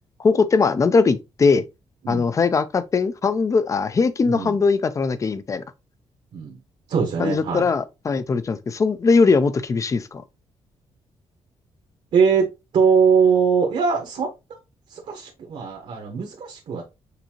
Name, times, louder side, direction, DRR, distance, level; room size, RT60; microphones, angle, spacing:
voice 1, 0.2-1.6 2.1-5.6 7.2-10.2, left 4 dB, 30° left, 0.5 m, -20 dB
voice 2, 4.2-4.6 6.3-6.6 6.9-7.7 12.1-12.5 12.7-14.3 14.9-16.8, right 6 dB, 65° right, 1.2 m, -21 dB
6.6 x 2.7 x 2.9 m
cardioid pair, 135°, 11 cm